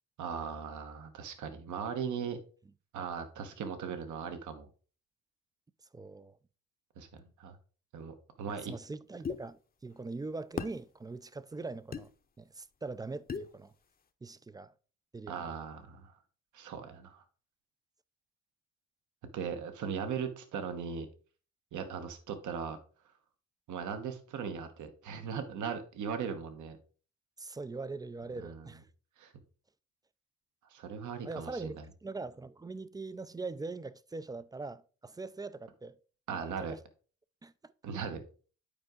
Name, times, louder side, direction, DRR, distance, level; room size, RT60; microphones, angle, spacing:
voice 1, 0.2-2.4 2.9-4.7 7.0-7.6 7.9-8.7 15.3-16.1 16.5-17.2 19.3-21.1 21.7-22.8 23.7-26.8 28.4-28.7 29.2-29.3 30.7-31.8 36.3-36.7 37.8-38.2, right 6 dB, 75° right, 1.2 m, -38 dB
voice 2, 5.9-6.4 8.5-12.1 12.4-13.7 14.2-14.7 15.1-15.4 27.4-28.8 31.2-31.8 32.0-36.0 36.3-36.8 37.4-37.7, right 3 dB, 15° right, 0.3 m, -42 dB
sound 1, 9.2-9.4 10.6-10.8 11.9-12.1 13.3-13.5, left 6 dB, 30° left, 0.7 m, -36 dB
8.7 x 4.7 x 3.8 m
cardioid pair, 90°, 30 cm